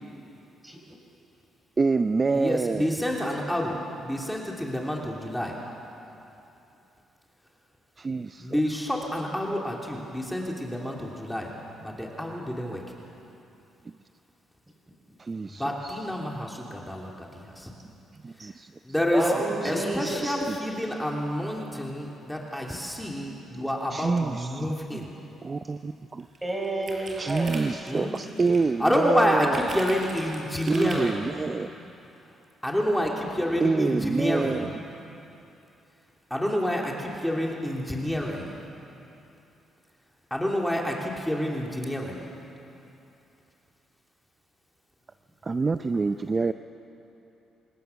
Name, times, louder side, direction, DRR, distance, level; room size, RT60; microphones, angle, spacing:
voice 1, 0.6-1.0 19.1-20.4 26.4-27.5, right 1 dB, 15° right, 1 dB, 5.4 m, -30 dB
voice 2, 1.8-3.0 8.0-8.6 15.2-16.1 18.2-18.7 19.6-19.7 20.5-20.6 23.9-25.0 25.4-26.3 27.2-29.8 30.7-31.7 33.6-34.7 45.4-46.5, right 4 dB, 30° right, 10 dB, 0.5 m, -27 dB
voice 3, 2.3-5.5 8.4-12.9 15.5-17.7 18.9-19.3 19.6-25.1 27.9-28.2 28.8-31.3 32.6-34.7 36.3-38.6 40.3-42.3, equal, 5° left, -1 dB, 2.9 m, -28 dB
sound 1, 25.8-25.9 26.2-28.7 29.5-31.0, right 2 dB, 45° right, 5.3 m, -40 dB
26.5 x 19.5 x 7.1 m, 2.9 s
cardioid pair, 90°, 0 cm